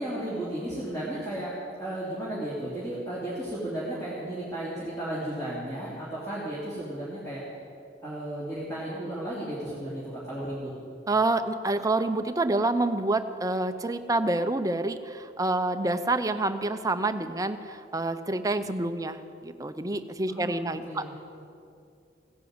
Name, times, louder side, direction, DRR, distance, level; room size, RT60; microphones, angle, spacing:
voice 1, 0.0-1.5 1.8-7.4 8.0-10.7 20.3-21.1, right 1 dB, 20° left, -8 dB, 2.9 m, -34 dB
voice 2, 11.1-19.2 19.4-21.1, right 2 dB, 20° right, 9 dB, 0.6 m, -27 dB
16.0 x 10.0 x 7.9 m, 2.5 s
head